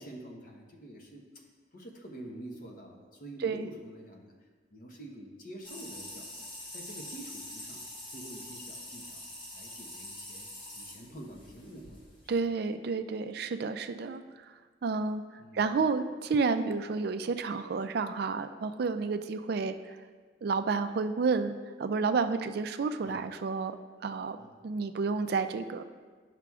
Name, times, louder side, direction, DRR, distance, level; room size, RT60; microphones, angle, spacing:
voice 1, 0.0-1.4 1.7-4.3 4.7-7.8 8.1-9.2 9.5-10.5 10.7-12.0 12.4-12.5 15.4-15.9 23.0-23.2 24.4-24.6, right 1 dB, 45° left, 0 dB, 1.0 m, -47 dB
sound 1, 5.6-12.4, left 1 dB, 25° left, 1.1 m, -45 dB
voice 2, 12.3-14.5 14.8-15.2 15.5-20.0 20.4-23.8 24.0-24.4 24.6-25.8, right 4 dB, 55° right, 9 dB, 0.3 m, -30 dB
11.0 x 5.8 x 2.4 m, 1.5 s
head